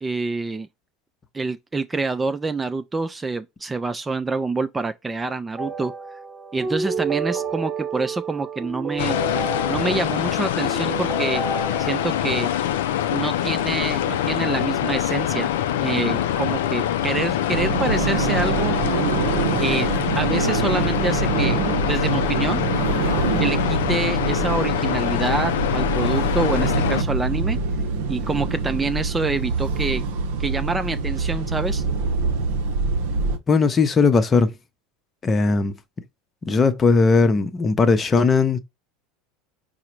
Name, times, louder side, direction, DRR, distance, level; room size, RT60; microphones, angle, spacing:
voice 1, 0.0-0.7 1.3-5.9 6.5-9.2 9.7-11.4 11.8-12.5 13.1-15.5 15.8-18.7 19.6-19.9 20.2-21.6 21.9-22.6 23.4-27.6 28.1-30.0 30.4-31.8, right 3 dB, 15° right, 0.4 m, -26 dB
sound 1, 5.6-12.5, right 3 dB, 35° right, 1.1 m, -30 dB
sound 2, 9.0-27.0, left 11 dB, 75° left, 0.4 m, -24 dB
sound 3, 17.5-33.4, right 4 dB, 65° right, 0.6 m, -25 dB
voice 2, 33.5-34.5 35.2-35.7 36.5-38.6, left 4 dB, 25° left, 0.7 m, -18 dB
4.8 x 2.1 x 4.5 m
hypercardioid pair, 80°, 0 cm